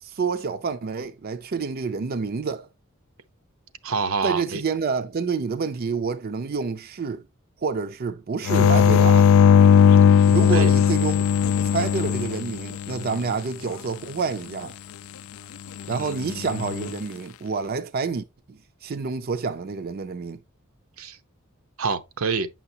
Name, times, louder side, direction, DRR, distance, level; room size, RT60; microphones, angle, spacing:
voice 1, 0.0-2.7 4.2-7.2 7.6-9.3 10.3-11.3 11.6-14.7 15.9-20.4, right 5 dB, 45° right, 0.5 m, -28 dB
voice 2, 3.8-4.6 10.5-10.7 15.9-16.3 21.0-21.2 21.8-22.5, right 4 dB, 80° right, 0.7 m, -27 dB
sound 1, 8.5-13.1 16.4-16.9, left 8 dB, 70° left, 0.3 m, -17 dB
8.9 x 5.7 x 2.7 m
head